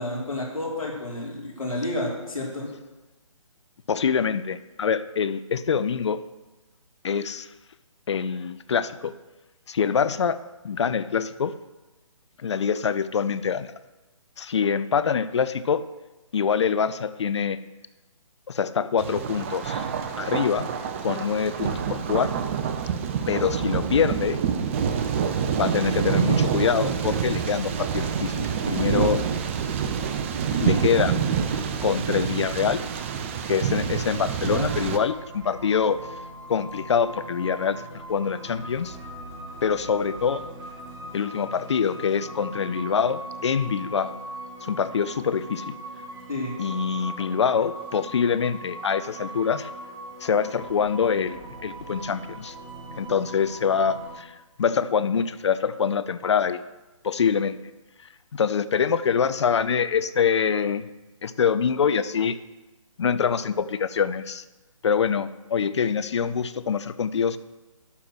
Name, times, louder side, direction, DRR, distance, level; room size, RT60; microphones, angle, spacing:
voice 1, 0.0-2.7 34.4-34.7 46.3-46.5, left 2 dB, 85° left, -2 dB, 2.9 m, -30 dB
voice 2, 3.9-6.2 7.0-7.5 8.1-9.1 9.7-10.4 10.6-11.5 12.4-13.7 14.4-15.8 16.3-17.6 18.5-19.9 20.2-20.7 21.0-22.3 23.3-24.4 25.4-29.2 30.6-31.2 31.7-32.8 33.5-36.0 36.5-37.8 38.1-39.0 39.6-40.4 41.1-44.2 44.6-45.8 46.6-49.7 50.2-52.5 52.9-56.6 57.0-57.6 58.3-60.9 61.2-62.4 63.0-64.4 64.8-67.4, left 6 dB, 55° left, 13 dB, 0.5 m, -25 dB
Thunder, 19.0-35.0, right 7 dB, 25° right, 0.5 m, -27 dB
sound 1, 34.7-54.1, right 1 dB, 40° right, 2.7 m, -40 dB
11.5 x 3.8 x 6.1 m, 1.1 s
figure-of-eight pair, 140°, 17 cm